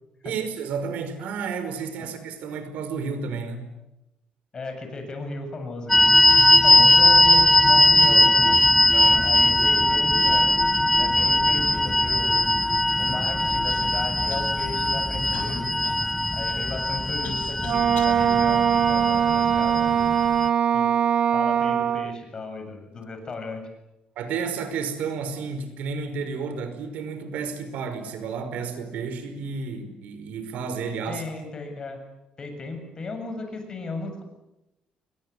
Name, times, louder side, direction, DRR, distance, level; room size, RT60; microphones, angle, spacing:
voice 1, 0.2-3.6 8.9-9.3 24.1-31.2, right 5 dB, 75° right, 10 dB, 5.2 m, -31 dB
voice 2, 4.5-6.2 6.6-8.6 9.2-10.5 11.0-12.3 13.0-15.7 16.3-20.0 20.7-20.9 21.3-23.6 31.1-32.0 32.4-34.2, left 3 dB, 30° left, 6 dB, 7.2 m, -35 dB
sound 1, 5.9-20.5, left 1 dB, 5° left, 0.9 m, -20 dB
Human voice / Cough, 13.7-13.9 14.3-14.8 15.3-18.2 18.9-19.7 20.5-20.6 21.3-21.6, left 8 dB, 80° left, 6.9 m, -44 dB
Wind instrument woodwind instrument, 17.6-22.2, right 8 dB, 50° right, 1.0 m, -21 dB
30.0 x 23.0 x 8.4 m, 0.93 s
cardioid pair, 140°, 3 cm